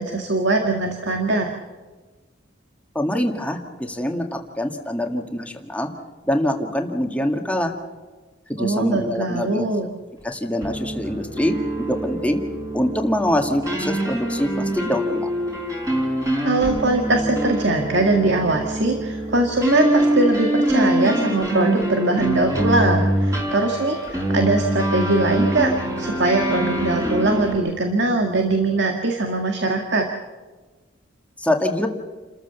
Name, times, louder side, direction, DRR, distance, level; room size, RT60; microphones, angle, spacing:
voice 1, 0.0-1.5 8.6-9.9 16.4-30.1, right 2 dB, 65° right, 3 dB, 1.9 m, -21 dB
voice 2, 2.9-5.9 6.2-7.7 8.5-9.7 10.2-12.4 12.7-15.3 31.4-31.9, left 1 dB, 5° left, 3 dB, 1.9 m, -24 dB
sound 1, 10.6-27.5, right 1 dB, 15° right, 5.5 m, -24 dB
29.0 x 14.0 x 7.0 m, 1.3 s
head